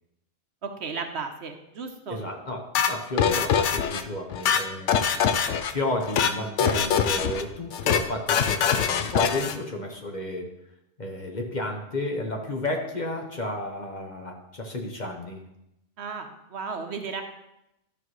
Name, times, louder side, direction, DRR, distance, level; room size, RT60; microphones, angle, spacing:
voice 1, 0.6-2.2 16.0-17.2, right 5 dB, 60° right, 5 dB, 1.0 m, -34 dB
voice 2, 2.1-5.0 5.7-10.5 11.0-15.4, left 1 dB, 40° left, 2 dB, 1.0 m, -32 dB
sound 1, 2.7-4.0 4.3-5.7 6.0-6.3 6.6-7.4 7.7-8.0 8.3-9.6, left 7 dB, 75° left, 0.9 m, -23 dB
12.0 x 6.1 x 3.1 m, 0.87 s
omnidirectional pair, 1.3 m